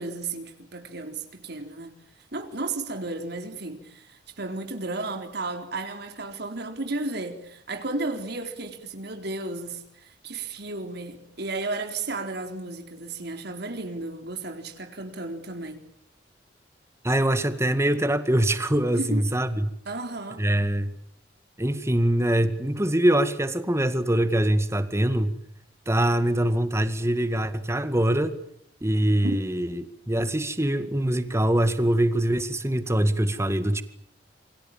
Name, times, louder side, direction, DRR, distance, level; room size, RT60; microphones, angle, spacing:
voice 1, 0.0-15.8 18.9-19.2 19.9-20.4 29.2-29.4, right 2 dB, 60° right, 4.0 m, -33 dB
voice 2, 17.0-19.7 20.4-20.9 21.6-25.4 25.9-28.3 28.8-33.8, right 1 dB, 15° right, 2.0 m, -23 dB
28.5 x 24.0 x 7.4 m
head